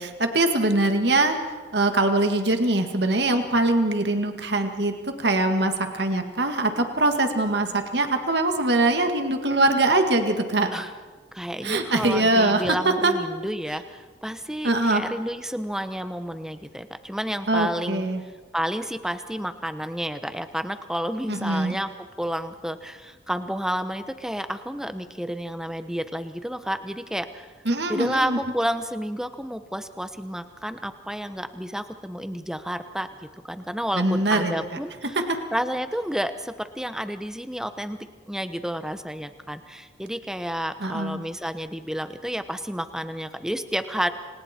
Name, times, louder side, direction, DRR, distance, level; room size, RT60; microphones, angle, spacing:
voice 1, 0.0-1.4 1.7-10.7 11.6-13.1 14.6-15.0 17.5-18.2 21.3-21.8 27.7-28.4 34.0-34.5 35.3-35.4 40.8-41.2, right 2 dB, 60° right, 6 dB, 2.0 m, -22 dB
voice 2, 11.3-18.1 18.5-21.9 22.2-27.5 27.9-33.1 33.4-35.2 35.5-38.0 38.3-44.1, equal, 5° right, 9 dB, 1.0 m, -30 dB
29.5 x 26.5 x 4.5 m, 1.4 s
head